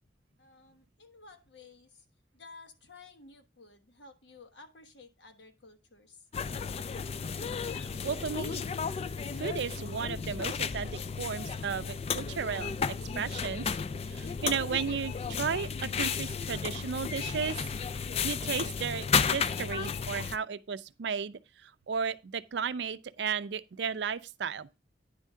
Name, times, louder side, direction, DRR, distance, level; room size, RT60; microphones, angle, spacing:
voice 1, 0.4-2.1 2.3-6.3, left 3 dB, 70° left, 1.2 m, -54 dB
sound 1, 6.3-20.4, left 6 dB, 35° left, 0.3 m, -33 dB
voice 2, 7.7-8.6 9.4-12.7 13.2-13.8 14.0-17.7 18.0-24.7, right 6 dB, 70° right, 0.4 m, -34 dB
9.7 x 3.6 x 5.5 m
head